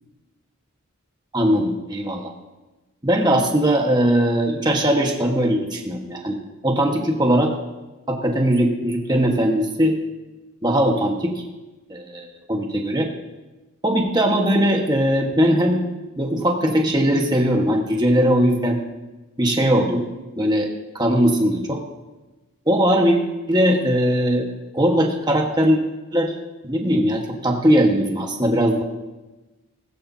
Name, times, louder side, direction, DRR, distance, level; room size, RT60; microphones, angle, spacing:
voice 1, 1.3-2.3 3.0-6.4 6.6-7.5 8.1-10.0 10.6-11.4 11.9-13.1 13.8-15.8 16.2-18.8 19.4-20.0 20.4-20.7 20.9-21.8 22.7-23.2 23.5-24.5 24.7-25.8 26.1-26.3 26.6-28.8, equal, 20° right, 1 dB, 1.5 m, -19 dB
20.0 x 13.5 x 2.8 m, 1.1 s
head